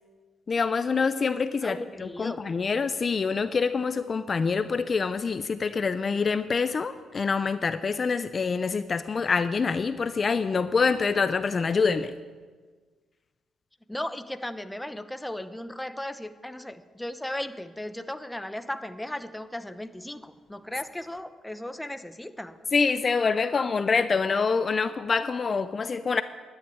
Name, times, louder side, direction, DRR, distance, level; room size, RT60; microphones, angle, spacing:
voice 1, 0.5-12.1 22.7-26.2, left 5 dB, 40° left, 12 dB, 0.6 m, -26 dB
voice 2, 1.6-2.4 13.9-22.6, left 1 dB, 5° left, 10 dB, 0.9 m, -36 dB
12.0 x 10.5 x 9.4 m, 1.5 s
cardioid pair, 90°, 0 cm